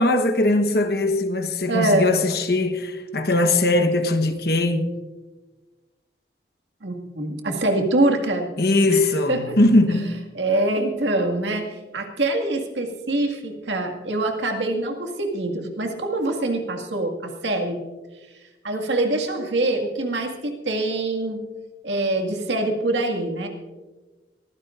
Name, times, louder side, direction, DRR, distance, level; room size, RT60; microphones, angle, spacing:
voice 1, 0.0-4.9 8.6-10.2, left 2 dB, 55° left, 1.2 m, -20 dB
voice 2, 1.7-2.1 6.8-8.5 8.9-9.6 10.4-17.8 18.6-21.4 21.8-23.5, right 2 dB, 85° right, 2.0 m, -24 dB
23.0 x 15.5 x 2.6 m
head